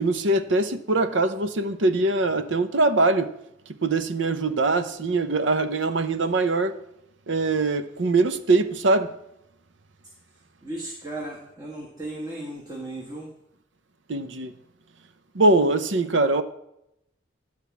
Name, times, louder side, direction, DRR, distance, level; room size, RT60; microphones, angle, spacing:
voice 1, 0.0-3.3 3.8-6.7 7.3-9.1 14.1-14.5 15.3-16.4, right 2 dB, 85° right, 0.8 m, -22 dB
voice 2, 10.6-13.3, right 1 dB, 20° right, 1.6 m, -35 dB
12.0 x 4.5 x 8.3 m
head